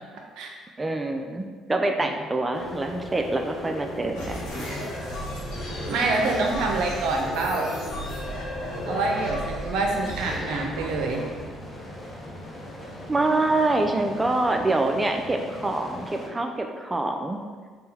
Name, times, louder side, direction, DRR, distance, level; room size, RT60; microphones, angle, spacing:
voice 1, 0.8-4.5 13.1-17.4, right 2 dB, 20° right, 4 dB, 0.5 m, -25 dB
sound 1, 2.5-16.3, left 1 dB, 35° left, 0.8 m, -39 dB
sound 2, 4.1-12.3, equal, 85° left, 1.2 m, -35 dB
voice 2, 5.9-7.8 8.9-11.3, right 3 dB, 75° right, 1 dB, 0.5 m, -26 dB
3.6 x 2.2 x 4.2 m, 1.5 s
supercardioid pair, 60°, 0 cm